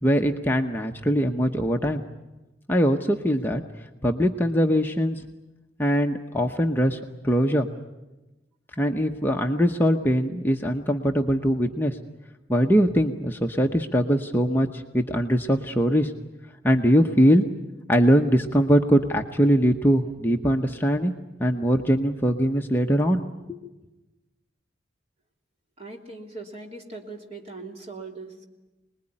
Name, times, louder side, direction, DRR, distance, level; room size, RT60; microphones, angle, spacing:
voice 1, 0.0-2.0 2.7-3.6 4.0-5.2 5.8-7.0 7.2-7.7 8.8-12.0 12.5-16.1 16.6-17.4 17.9-21.1 21.4-23.7, equal, 10° left, 2 dB, 0.9 m, -22 dB
voice 2, 25.8-28.4, right 3 dB, 35° right, 1 dB, 3.1 m, -40 dB
26.5 x 20.5 x 9.9 m, 1.1 s
head